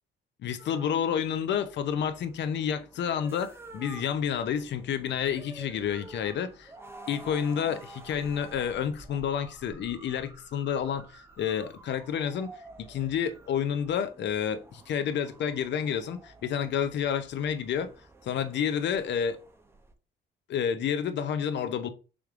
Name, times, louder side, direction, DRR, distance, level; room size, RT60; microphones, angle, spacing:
voice 1, 0.4-6.7 7.1-12.5 12.8-17.9 18.2-19.4 20.5-21.9, left 8 dB, 65° left, 0.6 m, -30 dB
sound 1, 0.6-19.9, right 2 dB, 10° right, 0.6 m, -50 dB
3.5 x 3.2 x 3.6 m
cardioid pair, 90°, 20 cm